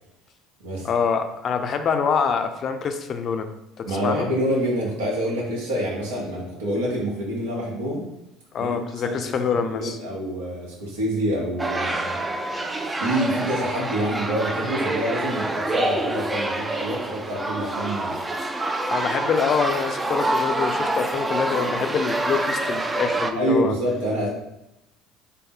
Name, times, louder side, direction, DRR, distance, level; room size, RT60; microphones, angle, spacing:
voice 1, 0.8-3.5 3.8-4.3 8.5-10.0 18.9-23.7, left 6 dB, 50° left, 7 dB, 0.4 m, -25 dB
voice 2, 3.9-8.1 8.6-12.2 13.0-18.2 23.3-24.3, equal, 85° right, -3 dB, 1.0 m, -27 dB
sound 1, 11.6-23.3, right 2 dB, 20° right, 0.4 m, -26 dB
3.8 x 2.1 x 3.7 m, 0.88 s
hypercardioid pair, 70°, 0 cm